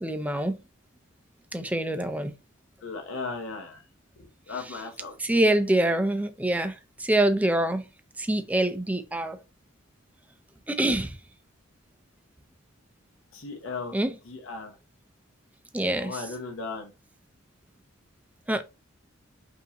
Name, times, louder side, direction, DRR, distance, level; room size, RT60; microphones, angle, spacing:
voice 1, 0.0-0.6 1.5-2.3 5.2-6.7 7.0-7.8 8.2-9.4 10.7-11.1 13.9-14.1 15.7-16.2 18.5-18.6, right 1 dB, 5° right, 0.4 m, -25 dB
voice 2, 2.8-3.8 4.2-5.1 13.3-14.0 14.3-14.7 16.0-16.9, left 4 dB, 75° left, 0.9 m, -36 dB
5.2 x 2.6 x 2.9 m
head